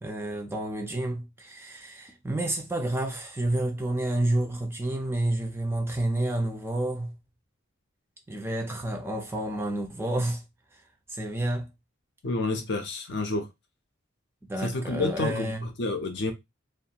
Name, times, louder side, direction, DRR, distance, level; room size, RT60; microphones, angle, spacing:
voice 1, 0.0-7.2 8.3-10.4 10.7-10.8 11.1-11.7 14.5-15.7, right 1 dB, 10° right, 0.3 m, -29 dB
voice 2, 12.2-13.5 14.6-16.3, left 2 dB, 55° left, 0.6 m, -29 dB
2.4 x 2.3 x 2.8 m
head